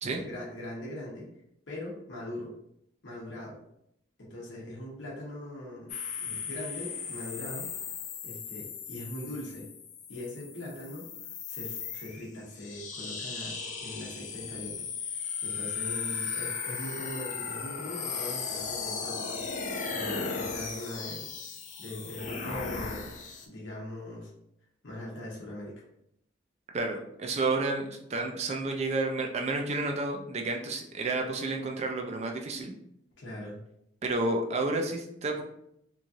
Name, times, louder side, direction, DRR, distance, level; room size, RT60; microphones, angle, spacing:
voice 1, 0.1-1.3 1.7-2.5 3.0-3.6 4.2-7.7 8.2-9.7 10.1-11.1 11.5-15.2 15.4-19.6 19.9-21.3 21.8-23.1 23.5-24.3 24.8-25.8 33.2-33.6, left 1 dB, 70° left, -5 dB, 0.9 m, -41 dB
sound 1, 5.9-23.5, left 5 dB, 40° left, 0.3 m, -37 dB
voice 2, 26.7-32.7 34.0-35.4, right 2 dB, 35° right, 3 dB, 0.4 m, -30 dB
3.0 x 2.7 x 2.3 m, 0.76 s
head